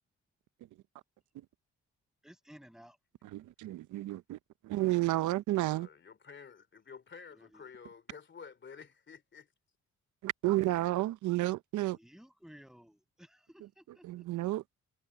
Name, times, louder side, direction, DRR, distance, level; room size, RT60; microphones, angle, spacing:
voice 1, 2.2-3.0 7.3-7.7 11.9-14.3, equal, ahead, 7.1 m, -56 dB
voice 2, 3.3-4.4 4.6-5.9 10.2-12.0 14.1-14.6, right 17 dB, 75° right, 0.6 m, -31 dB
voice 3, 5.6-9.5, left 6 dB, 40° left, 2.9 m, -51 dB
cardioid pair, 90°, 30 cm